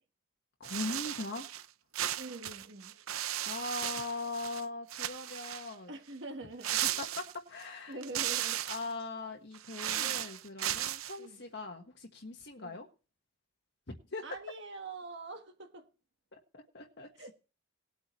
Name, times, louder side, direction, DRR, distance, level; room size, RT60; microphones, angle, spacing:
voice 1, 0.6-1.5 3.4-5.9 6.8-8.2 8.6-12.9 14.1-14.2 16.3-17.3, left 3 dB, 55° left, 1.4 m, -41 dB
sound 1, 0.6-1.6 1.9-4.6 4.9-5.7 6.6-7.6 8.0-8.9 9.5-11.2, right 12 dB, 80° right, 0.7 m, -36 dB
voice 2, 2.2-3.0 5.9-7.1 7.9-8.6 9.9-10.2 11.2-11.4 12.6-12.8 14.2-15.9 17.2-17.3, right 2 dB, 55° right, 1.3 m, -45 dB
19.5 x 8.5 x 3.1 m
head